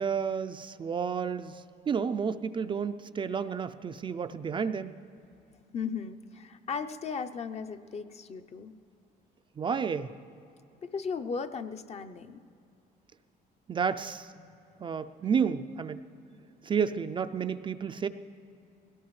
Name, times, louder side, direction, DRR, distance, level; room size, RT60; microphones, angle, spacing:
voice 1, 0.0-4.9 9.6-10.1 13.7-14.3 14.8-16.0 16.6-18.1, right 6 dB, 30° right, 9 dB, 0.4 m, -31 dB
voice 2, 5.7-8.7 10.8-12.4 14.4-14.6, left 5 dB, 40° left, 9 dB, 0.6 m, -36 dB
21.0 x 17.5 x 3.2 m, 2.6 s
cardioid pair, 110°, 17 cm